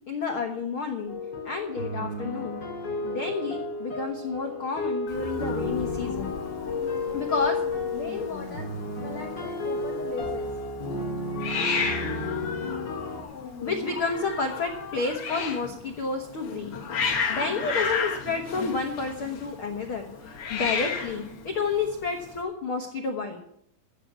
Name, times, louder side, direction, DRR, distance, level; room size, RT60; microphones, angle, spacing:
voice 1, 0.1-1.1 1.4-2.6 3.0-6.3 7.1-7.6 7.9-8.7 9.0-10.5 13.6-16.7 17.3-23.5, left 4 dB, 85° left, 2 dB, 1.1 m, -31 dB
sound 1, 1.1-13.2, left 2 dB, 30° left, 2.8 m, -32 dB
Hiss, 5.1-22.4, left 5 dB, 50° left, 1.8 m, -34 dB
15.0 x 6.3 x 9.4 m, 0.69 s
omnidirectional pair, 4.7 m